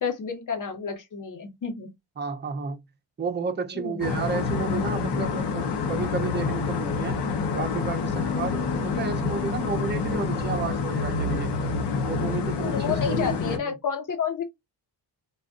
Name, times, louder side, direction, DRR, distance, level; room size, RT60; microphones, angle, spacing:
voice 1, 0.0-1.9 3.7-4.0 12.6-14.4, left 7 dB, 50° left, 1.2 m, -30 dB
voice 2, 2.2-2.8 3.2-7.2 7.5-11.5 12.0-13.7, right 5 dB, 25° right, 0.7 m, -32 dB
sound 1, 4.0-13.6, left 4 dB, 75° left, 1.0 m, -27 dB
4.0 x 2.5 x 2.5 m
wide cardioid pair, 150°, 40 cm